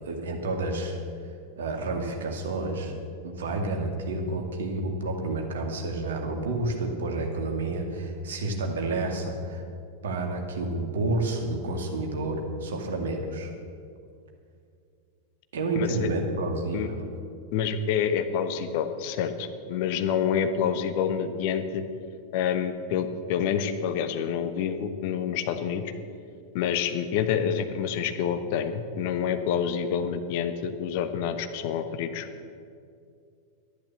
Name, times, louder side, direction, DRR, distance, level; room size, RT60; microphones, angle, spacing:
voice 1, 0.0-1.0 1.6-2.9 3.2-9.6 10.0-13.5 15.5-17.0, right 2 dB, 60° right, 2 dB, 2.2 m, -30 dB
voice 2, 15.7-16.1 16.7-16.9 17.5-21.8 22.3-25.9 26.5-32.3, left 8 dB, 50° left, 9 dB, 1.0 m, -28 dB
12.0 x 10.5 x 7.4 m, 2.4 s
figure-of-eight pair, 90°, 0 cm